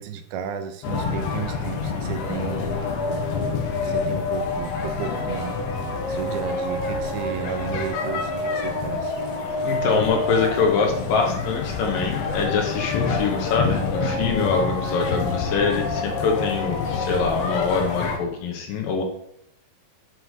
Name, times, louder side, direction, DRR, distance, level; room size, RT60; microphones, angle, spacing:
voice 1, 0.0-2.8 3.8-5.6 6.1-9.2, right 7 dB, 80° right, 9 dB, 2.3 m, -33 dB
sound 1, 0.8-18.2, left 4 dB, 90° left, 1.4 m, -27 dB
voice 2, 9.6-19.0, left 5 dB, 70° left, 2 dB, 2.4 m, -24 dB
6.3 x 5.8 x 6.4 m, 0.74 s
omnidirectional pair, 4.6 m